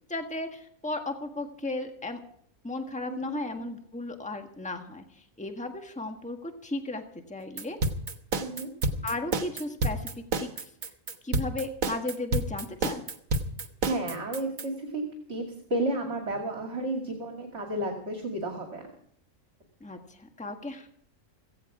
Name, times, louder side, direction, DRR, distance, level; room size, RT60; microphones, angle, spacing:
voice 1, 0.1-2.2 2.6-7.8 9.0-10.1 10.4-10.7 11.2-13.1 19.8-20.9, left 2 dB, 5° left, 5 dB, 1.4 m, -35 dB
sound 1, 7.6-14.7, right 2 dB, 75° right, 1.7 m, -29 dB
voice 2, 8.4-8.7 13.8-15.0 15.3-18.9, right 1 dB, 55° right, 3 dB, 2.7 m, -32 dB
16.5 x 16.0 x 4.9 m, 0.64 s
omnidirectional pair, 1.4 m